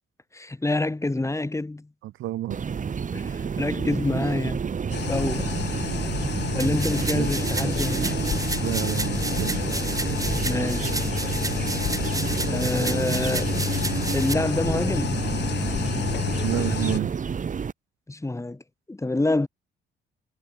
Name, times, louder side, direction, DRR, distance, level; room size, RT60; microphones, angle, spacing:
voice 1, 0.3-1.9 3.1-4.6 5.1-5.5 6.5-8.2 10.4-10.9 12.4-13.5 14.1-15.2 18.1-18.6 18.9-19.5, left 2 dB, 15° left, 4.3 m, -27 dB
voice 2, 2.0-2.6 7.1-7.3 8.6-9.6 12.0-12.4 16.4-17.1, right 15 dB, 85° right, 3.2 m, -30 dB
sound 1, 2.5-17.7, right 6 dB, 40° right, 1.8 m, -29 dB
sound 2, 4.9-17.0, left 10 dB, 60° left, 1.4 m, -30 dB
sound 3, 6.6-14.3, right 2 dB, 15° right, 5.4 m, -33 dB
cardioid pair, 90°, 20 cm